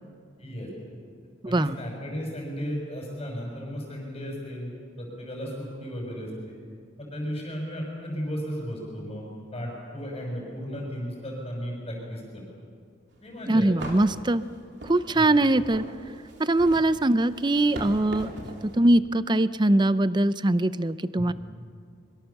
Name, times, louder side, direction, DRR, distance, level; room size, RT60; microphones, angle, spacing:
voice 1, 0.4-0.7 1.5-4.7 5.0-6.5 7.0-12.4 13.2-14.0 15.1-15.3 21.2-21.3, equal, 25° left, -3 dB, 6.3 m, -35 dB
voice 2, 1.4-1.8 13.5-14.4 14.8-15.8 16.4-18.3 18.6-21.3, right 1 dB, 20° right, 14 dB, 0.6 m, -22 dB
sound 1, 13.2-13.3 13.8-18.8, right 1 dB, 55° right, 3.4 m, -40 dB
25.5 x 23.5 x 7.1 m, 2.2 s
head